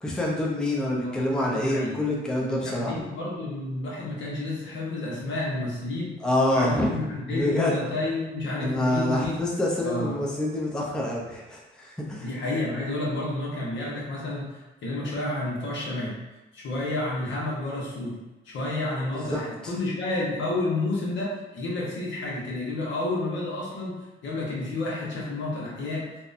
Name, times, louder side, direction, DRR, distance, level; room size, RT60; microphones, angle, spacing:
voice 1, 0.0-3.0 6.2-6.9 7.3-7.8 8.6-12.3 19.3-19.4, left 1 dB, 5° left, -3 dB, 0.5 m, -26 dB
voice 2, 0.9-2.0 2.4-6.1 6.5-9.4 9.8-10.2 12.2-16.1 16.5-18.2 18.4-26.1, left 2 dB, 65° left, -5 dB, 0.9 m, -30 dB
2.7 x 2.1 x 2.4 m, 1.1 s
cardioid pair, 90°, 20 cm